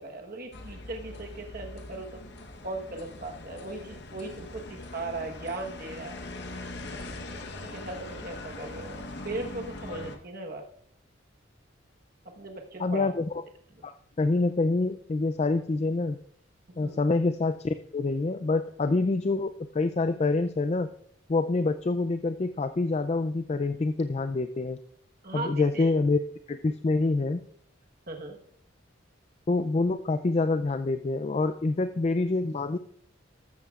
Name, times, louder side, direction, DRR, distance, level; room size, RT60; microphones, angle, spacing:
voice 1, 0.0-2.2 2.6-6.2 7.4-10.6 12.2-13.1 13.7-13.8 16.8-17.1 25.2-25.9 28.1-28.4, right 2 dB, 45° right, 2 dB, 1.2 m, -38 dB
sound 1, 0.5-10.2, left 2 dB, 55° left, 1.1 m, -41 dB
voice 2, 12.8-13.3 13.8-16.2 16.8-20.9 21.3-24.8 25.3-26.2 26.5-27.4 29.5-32.8, left 3 dB, 30° left, 10 dB, 0.3 m, -26 dB
13.5 x 13.0 x 2.4 m, 0.67 s
head